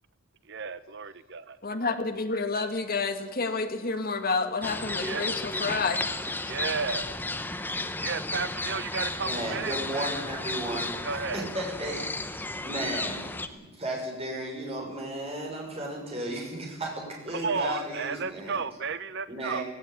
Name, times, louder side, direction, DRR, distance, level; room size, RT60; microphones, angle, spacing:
voice 1, 0.5-1.6 5.0-5.2 6.5-7.1 8.0-10.1 11.0-11.5 17.3-19.6, right 5 dB, 55° right, 14 dB, 0.9 m, -33 dB
voice 2, 1.6-6.0, left 4 dB, 45° left, 7 dB, 1.8 m, -29 dB
sound 1, 4.6-13.5, left 2 dB, 10° left, 1.0 m, -33 dB
voice 3, 9.2-10.9 11.3-12.0 12.6-18.6 19.3-19.6, right 1 dB, 30° right, 0 dB, 6.0 m, -34 dB
17.0 x 17.0 x 9.3 m, 1.2 s
head